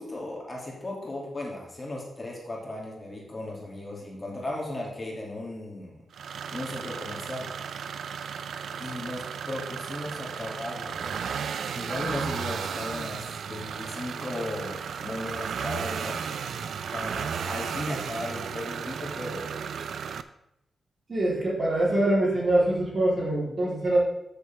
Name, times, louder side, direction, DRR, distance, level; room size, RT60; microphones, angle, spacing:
voice 1, 0.0-6.0 6.5-7.5 8.8-11.3 11.7-16.2 16.9-19.7, left 1 dB, 25° left, -3 dB, 2.5 m, -36 dB
sound 1, 6.1-20.2, right 7 dB, 85° right, 0.4 m, -34 dB
voice 2, 21.1-24.0, right 1 dB, 40° right, -5 dB, 3.5 m, -24 dB
13.0 x 6.9 x 3.5 m, 0.85 s
wide cardioid pair, 120°, 0 cm